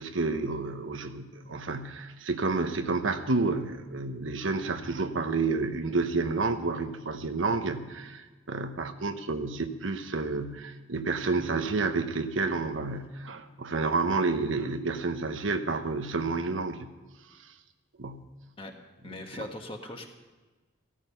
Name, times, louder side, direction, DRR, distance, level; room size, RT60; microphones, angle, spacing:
voice 1, 0.0-16.9 18.0-18.3 19.1-19.5, right 3 dB, 80° right, 7 dB, 1.1 m, -30 dB
voice 2, 19.0-20.1, left 1 dB, 25° left, 3 dB, 1.7 m, -40 dB
16.0 x 14.0 x 5.7 m, 1.3 s
head